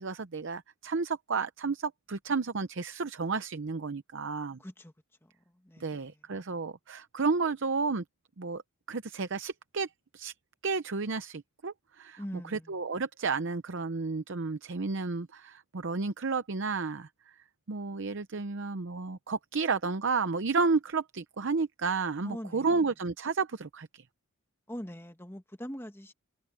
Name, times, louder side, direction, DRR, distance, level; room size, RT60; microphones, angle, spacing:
voice 1, 0.0-4.6 5.8-8.0 8.4-8.6 8.9-10.3 10.6-12.2 12.5-17.1 17.7-24.0, right 4 dB, 55° right, 0.7 m, -32 dB
voice 2, 4.6-4.9 5.2-6.2 12.2-12.8 22.2-22.8 24.7-26.1, equal, 10° left, 1.5 m, -43 dB
head